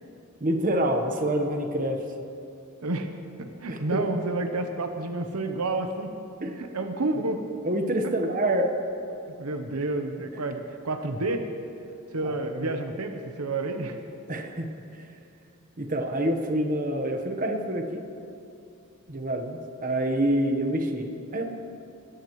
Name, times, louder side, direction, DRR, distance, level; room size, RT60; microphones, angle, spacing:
voice 1, 0.4-2.0 3.7-4.0 6.4-6.6 7.6-8.7 12.2-12.3 14.3-14.7 14.9-15.1 15.8-18.0 19.1-21.4, right 1 dB, 40° right, 4 dB, 1.2 m, -27 dB
voice 2, 3.4-6.1 6.6-7.4 9.4-11.5 12.1-14.0, right 2 dB, 85° right, 6 dB, 0.9 m, -30 dB
20.0 x 16.0 x 3.2 m, 2.7 s
head